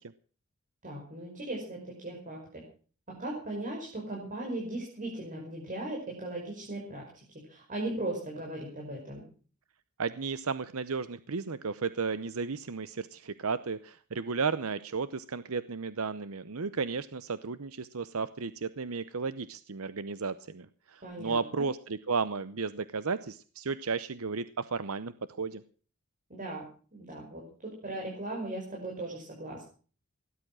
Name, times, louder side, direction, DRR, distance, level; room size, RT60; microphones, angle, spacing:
voice 1, 0.8-2.6 3.1-7.2 7.5-9.2 21.0-21.7 26.3-26.7 26.9-29.6, right 1 dB, 35° right, -2 dB, 5.7 m, -38 dB
voice 2, 10.0-25.6, right 5 dB, 70° right, 14 dB, 0.8 m, -34 dB
18.0 x 11.5 x 6.1 m, 0.41 s
head